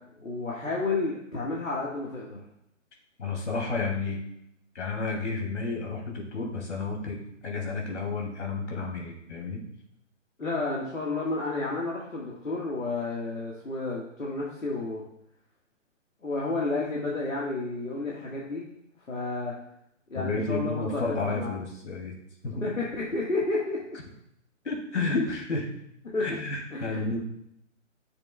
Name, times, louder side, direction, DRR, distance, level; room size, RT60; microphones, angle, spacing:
voice 1, 0.2-2.4 10.4-15.0 16.2-18.6 19.1-19.5 20.1-21.5 22.5-24.0 26.1-26.2 26.7-27.2, left 3 dB, 80° left, -4 dB, 1.7 m, -31 dB
voice 2, 3.2-4.2 4.7-9.6 20.1-22.1 22.4-22.7 24.6-25.7 26.2-27.2, left 3 dB, 65° left, 0 dB, 2.7 m, -31 dB
11.0 x 6.8 x 2.3 m, 0.77 s
figure-of-eight pair, 130°, 38 cm